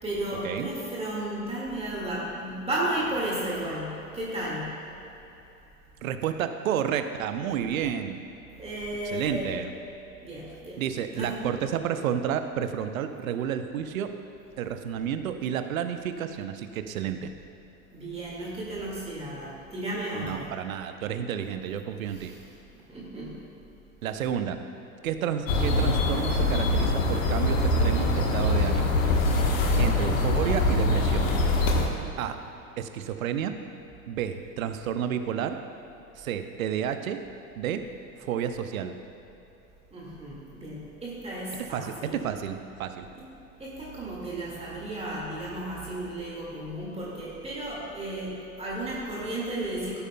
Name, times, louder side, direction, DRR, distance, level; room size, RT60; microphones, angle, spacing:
voice 1, 0.0-4.8 8.6-9.6 10.2-10.8 11.1-11.4 17.9-20.6 22.1-22.5 22.9-23.4 39.9-42.2 43.2-50.0, right 1 dB, 15° right, -5 dB, 1.9 m, -34 dB
voice 2, 6.0-8.2 9.0-9.7 10.8-14.1 14.6-17.3 20.1-22.3 24.0-24.6 25.0-29.0 29.3-29.4 29.8-31.3 32.2-32.4 32.8-33.5 34.1-35.6 36.2-37.2 37.6-37.8 38.2-39.0 41.7-43.1, right 9 dB, 65° right, 9 dB, 0.7 m, -31 dB
sound 1, 25.5-31.9, left 2 dB, 60° left, 1.2 m, -23 dB
16.5 x 8.1 x 2.2 m, 2.9 s
figure-of-eight pair, 90°, 44 cm